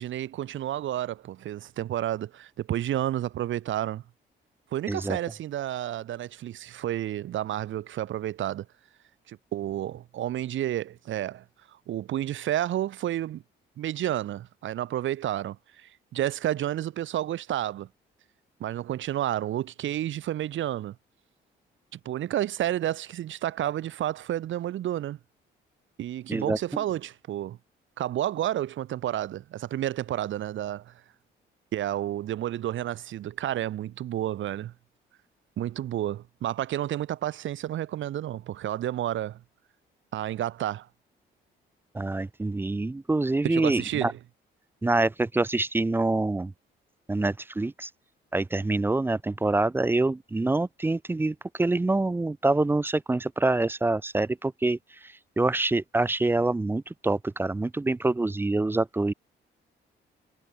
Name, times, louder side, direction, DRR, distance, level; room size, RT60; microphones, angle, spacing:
voice 1, 0.0-4.0 4.7-8.7 9.3-11.4 11.9-13.4 13.8-17.9 18.6-21.0 21.9-25.2 26.0-27.6 28.0-30.9 31.7-34.7 35.6-39.4 40.1-40.9 43.4-44.2, right 12 dB, 75° right, 3.0 m, -30 dB
voice 2, 4.9-5.2 26.3-26.6 41.9-44.1 44.8-46.5 47.1-47.9 48.3-54.8 55.4-59.1, right 2 dB, 10° right, 0.3 m, -26 dB
cardioid pair, 90°, 20 cm